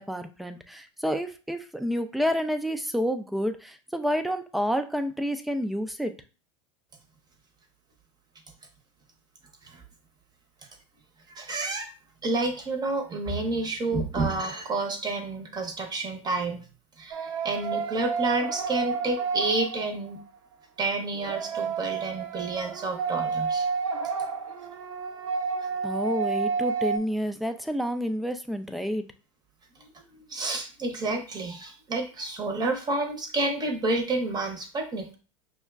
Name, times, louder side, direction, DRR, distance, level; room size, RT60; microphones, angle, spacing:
voice 1, 0.0-6.1 25.8-29.0, equal, ahead, 7 dB, 0.4 m, -29 dB
voice 2, 11.3-11.9 12.2-16.6 17.0-20.2 20.8-23.7 29.8-35.2, right 2 dB, 25° right, 4 dB, 0.8 m, -30 dB
sound 1, 17.1-20.2 21.1-27.0, right 5 dB, 75° right, 0.6 m, -30 dB
5.5 x 2.1 x 2.3 m, 0.36 s
hypercardioid pair, 85°, 17 cm